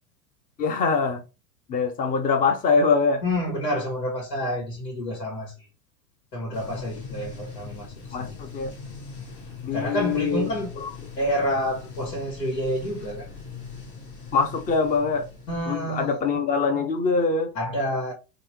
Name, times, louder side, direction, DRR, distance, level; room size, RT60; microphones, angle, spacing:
voice 1, 0.6-1.2 1.7-3.2 8.1-8.7 9.6-10.9 14.3-15.3 15.6-17.5, left 4 dB, 15° left, 0.6 m, -23 dB
voice 2, 3.2-5.5 6.3-8.3 9.7-10.7 11.2-13.3 15.5-16.2 17.6-18.1, equal, 85° left, 2.1 m, -28 dB
sound 1, 6.5-16.4, left 5 dB, 35° left, 1.3 m, -41 dB
3.8 x 2.9 x 3.1 m
hypercardioid pair, 105°, 49 cm